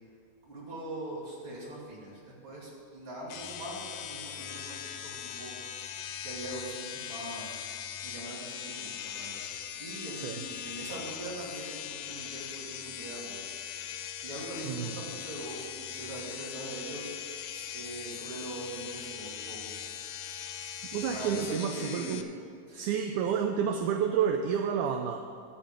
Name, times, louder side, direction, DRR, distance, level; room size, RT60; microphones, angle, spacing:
voice 1, 0.4-7.6 8.0-9.4 9.8-13.5 13.8-19.8 20.2-20.3 21.1-22.3 22.7-22.9, right 2 dB, 40° right, -5 dB, 3.1 m, -42 dB
sound 1, 3.3-22.2, left 9 dB, 75° left, 1.6 m, -40 dB
voice 2, 20.9-22.2 22.7-25.2, right 7 dB, 80° right, 5 dB, 2.0 m, -29 dB
13.5 x 4.9 x 8.9 m, 2.3 s
omnidirectional pair, 3.7 m